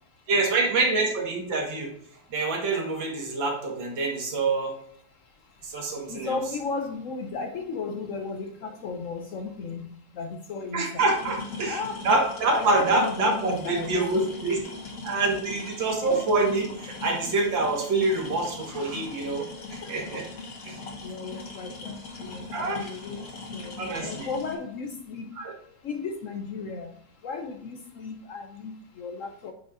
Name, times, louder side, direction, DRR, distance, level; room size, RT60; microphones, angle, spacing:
voice 1, 0.3-1.9 2.3-4.7 5.6-6.4 10.7-14.6 15.0-20.2 20.7-20.8 22.5-22.9 23.8-24.3 25.4-25.5, right 3 dB, 85° right, 2.3 m, -26 dB
voice 2, 6.1-9.9 10.1-11.1 11.7-12.0 12.5-14.0 19.8-20.2 21.0-23.2 23.5-23.7 24.0-25.3 25.8-26.9 27.2-29.5, left 4 dB, 70° left, 0.7 m, -35 dB
sound 1, 11.0-24.6, left 3 dB, 50° left, 1.8 m, -40 dB
8.7 x 5.8 x 2.6 m
omnidirectional pair, 2.0 m